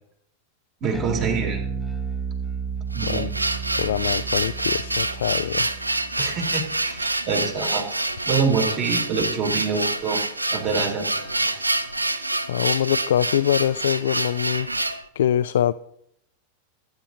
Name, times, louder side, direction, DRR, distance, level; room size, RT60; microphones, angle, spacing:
voice 1, 0.8-1.6 2.9-3.3 6.2-7.9 8.2-10.2 10.5-11.6, right 5 dB, 35° right, 2 dB, 3.0 m, -26 dB
Bass guitar, 0.9-7.4, right 5 dB, 5° right, 1.0 m, -32 dB
sound 1, 2.7-15.0, right 2 dB, 85° right, 0.6 m, -27 dB
voice 2, 3.8-5.7 12.5-15.7, left 10 dB, 60° left, 13 dB, 0.3 m, -24 dB
18.0 x 9.8 x 2.7 m, 0.72 s
figure-of-eight pair, 90°, 0 cm